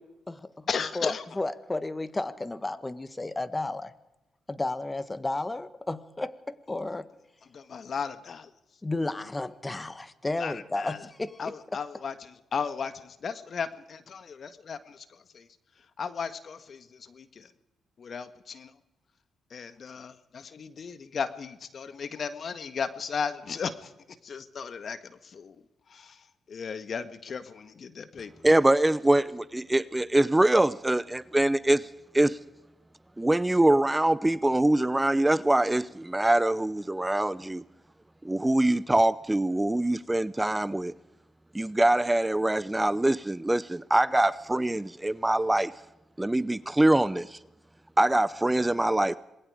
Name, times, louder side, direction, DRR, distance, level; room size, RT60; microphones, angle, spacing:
voice 1, 0.0-0.7 0.9-3.9 4.5-7.1 8.8-11.8, left 2 dB, 25° left, 1.6 m, -33 dB
voice 2, 0.7-1.2 7.5-8.5 10.4-11.0 11.4-12.1 12.5-12.9 13.2-15.0 16.0-16.8 17.1-17.3 18.0-18.7 19.5-23.7 24.2-25.0 25.3-25.6 25.9-26.1 26.5-28.3, left 6 dB, 60° left, 1.7 m, -35 dB
voice 3, 28.4-31.9 32.1-32.4 33.2-37.6 38.2-40.9 41.5-45.7 46.2-47.4 48.0-49.2, right 1 dB, 15° right, 0.7 m, -24 dB
27.0 x 21.0 x 5.0 m
supercardioid pair, 55°, 0 cm